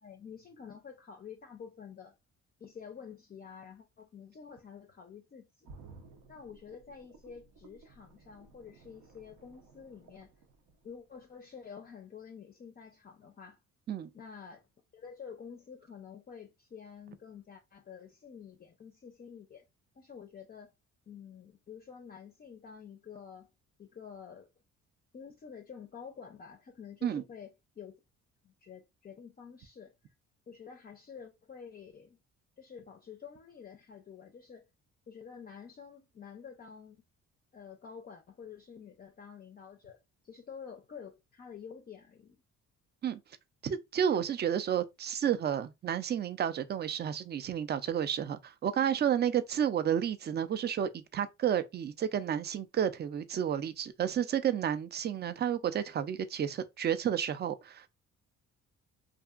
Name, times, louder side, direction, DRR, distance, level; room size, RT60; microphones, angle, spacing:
voice 1, 0.0-2.1 2.6-5.7 6.3-10.3 10.8-13.6 14.1-14.7 14.9-19.6 20.0-20.7 21.1-23.5 23.8-24.5 25.1-28.0 28.4-29.9 30.5-32.2 32.6-34.7 35.1-37.0 37.5-42.4, left 6 dB, 30° left, 0.4 m, -49 dB
sound 1, 5.6-11.5 11.8-11.9, right 4 dB, 80° right, 0.7 m, -56 dB
voice 2, 43.6-57.9, right 9 dB, 35° right, 0.4 m, -31 dB
2.7 x 2.5 x 2.3 m
cardioid pair, 90°, 30 cm